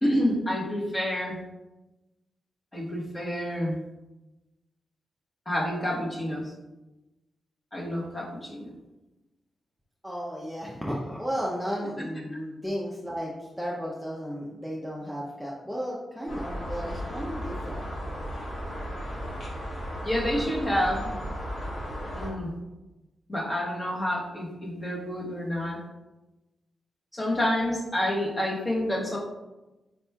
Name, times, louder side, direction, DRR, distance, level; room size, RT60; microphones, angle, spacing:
voice 1, 0.0-1.4 2.7-3.8 5.5-6.4 7.7-8.7 20.0-21.2 22.1-22.5 23.3-25.8 27.1-29.2, equal, 20° left, -3 dB, 1.0 m, -28 dB
voice 2, 10.0-17.9, equal, ahead, -4 dB, 0.5 m, -34 dB
sound 1, 16.3-22.3, equal, 55° left, 1.5 m, -35 dB
4.3 x 4.1 x 2.3 m, 1.0 s
wide cardioid pair, 110°, 0 cm